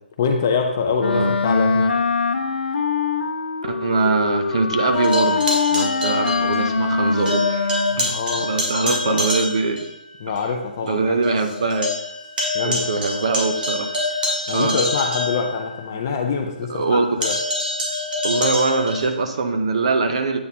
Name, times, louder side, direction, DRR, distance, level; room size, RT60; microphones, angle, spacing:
voice 1, 0.2-2.0 8.0-9.3 10.2-11.2 12.5-13.2 14.5-17.4, left 5 dB, 20° left, 3 dB, 0.3 m, -25 dB
Wind instrument woodwind instrument, 1.0-8.2, left 4 dB, 85° left, 0.6 m, -23 dB
voice 2, 3.6-5.4 5.7-7.7 7.9-9.8 10.8-11.9 12.6-13.9 14.5-14.8 16.7-17.1 18.2-20.4, right 3 dB, 35° right, 7 dB, 0.5 m, -22 dB
sound 1, 4.9-7.0 7.3-9.9 10.4-10.5 10.9-11.0 11.2-16.0 17.2-19.1, left 1 dB, 60° right, 2.0 m, -26 dB
8.4 x 4.2 x 2.7 m, 0.86 s
hypercardioid pair, 175°, 5 cm